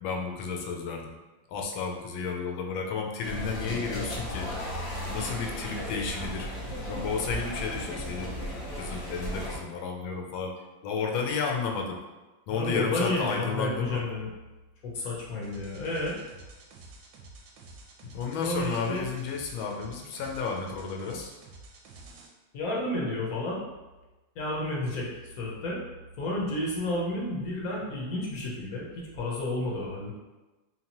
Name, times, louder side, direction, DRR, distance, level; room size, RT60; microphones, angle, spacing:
voice 1, 0.0-1.1 1.5-4.5 5.1-6.5 6.9-8.3 8.8-10.5 10.8-12.0 12.5-14.0 18.0-21.3, left 5 dB, 90° left, 1 dB, 1.4 m, -32 dB
sound 1, 3.2-9.6, equal, 30° left, 0.6 m, -35 dB
voice 2, 12.5-14.3 14.9-16.2 18.4-19.1 22.5-23.6 24.4-25.8 26.2-30.1, left 1 dB, 55° left, -4 dB, 1.2 m, -31 dB
sound 2, 15.4-22.3, right 3 dB, 80° right, 1.3 m, -50 dB
4.1 x 2.9 x 2.9 m, 1.1 s
omnidirectional pair, 2.1 m